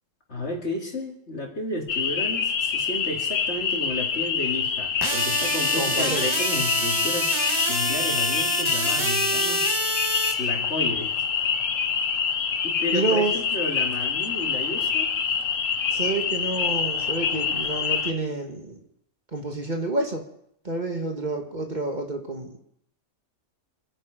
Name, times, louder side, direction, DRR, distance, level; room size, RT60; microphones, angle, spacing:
voice 1, 0.3-9.8 10.4-11.1 12.6-15.1, left 2 dB, 55° left, 0 dB, 3.1 m, -32 dB
sound 1, 1.9-18.1, left 6 dB, 70° left, 1.4 m, -26 dB
sound 2, 5.0-10.3, right 1 dB, 20° right, 1.7 m, -27 dB
voice 2, 5.8-6.3 12.9-13.4 15.9-18.8 19.3-20.2 20.6-22.6, right 2 dB, 35° right, 3 dB, 1.9 m, -28 dB
27.5 x 10.0 x 5.1 m, 0.75 s
omnidirectional pair, 1.4 m